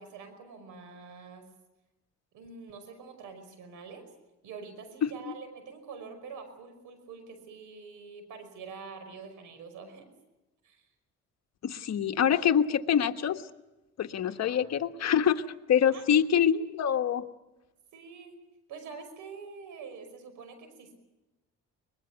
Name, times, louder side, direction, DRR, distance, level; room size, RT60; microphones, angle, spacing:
voice 1, 0.0-1.5 2.3-4.0 4.4-10.1 10.6-10.8 14.3-14.6 15.9-16.3 17.9-18.4 18.7-21.0, right 5 dB, 90° right, 9 dB, 5.5 m, -46 dB
voice 2, 11.6-13.4 14.0-15.4 15.7-17.2, left 8 dB, 60° left, 7 dB, 1.5 m, -25 dB
23.0 x 21.5 x 8.3 m, 1.0 s
cardioid pair, 90°, 30 cm